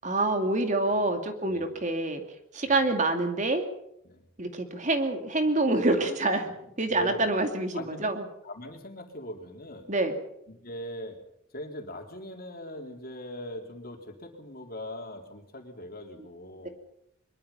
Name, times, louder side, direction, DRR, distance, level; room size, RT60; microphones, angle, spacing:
voice 1, 0.0-2.2 2.5-3.6 4.4-8.2 9.9-10.2 16.6-16.7, right 2 dB, 35° right, 6 dB, 2.4 m, -26 dB
voice 2, 1.4-1.8 2.6-2.8 4.0-4.3 6.6-7.3 7.7-8.1 8.4-9.9 10.5-11.2 11.5-16.7, left 1 dB, 45° left, 3 dB, 3.9 m, -41 dB
23.5 x 22.5 x 5.8 m, 0.78 s
head